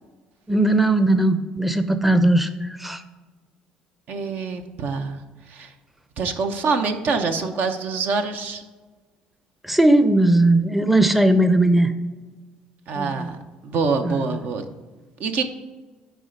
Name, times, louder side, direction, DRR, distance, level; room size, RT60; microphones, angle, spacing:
voice 1, 0.5-3.0 9.6-11.9 12.9-13.3 14.0-14.4, right 1 dB, 5° right, 10 dB, 0.6 m, -18 dB
voice 2, 4.1-5.2 5.5-5.7 6.2-8.6 12.9-13.4 13.6-14.6 15.2-15.4, right 4 dB, 60° right, 7 dB, 0.8 m, -25 dB
10.0 x 3.4 x 5.1 m, 1.3 s
supercardioid pair, 70°, 3 cm